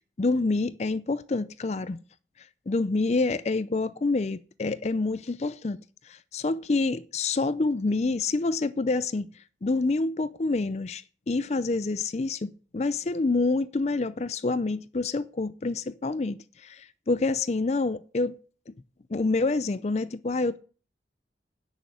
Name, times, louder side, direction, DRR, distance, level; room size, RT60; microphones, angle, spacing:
voice 1, 0.2-2.0 2.7-5.8 6.1-9.3 9.6-18.4 18.7-18.8 19.1-20.6, left 3 dB, 40° left, 0.4 m, -27 dB
10.0 x 6.3 x 8.2 m
head